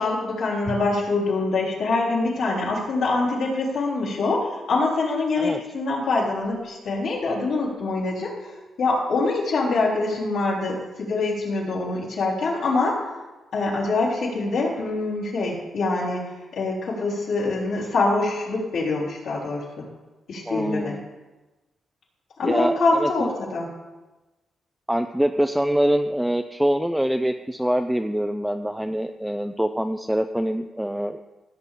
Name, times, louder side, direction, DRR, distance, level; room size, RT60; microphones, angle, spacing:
voice 1, 0.0-8.5 8.8-13.0 13.5-16.2 16.5-19.9 20.3-21.0 22.4-23.7, left 3 dB, 75° left, -5 dB, 3.8 m, -24 dB
voice 2, 20.5-21.0 22.4-23.3 24.9-31.2, equal, 5° right, 7 dB, 0.4 m, -24 dB
16.0 x 7.6 x 3.8 m, 1.1 s
cardioid pair, 125°, 0 cm